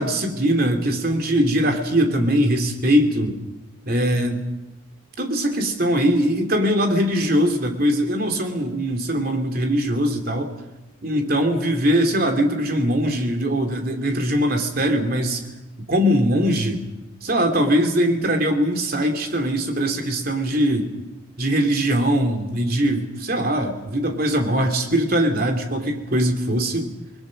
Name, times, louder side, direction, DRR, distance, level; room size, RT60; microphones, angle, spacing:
voice 1, 0.0-3.4 3.9-4.4 5.2-10.5 11.0-15.4 15.9-16.9 17.2-20.9 21.4-26.9, equal, 45° right, 4 dB, 3.0 m, -21 dB
29.5 x 21.0 x 6.6 m, 1.0 s
head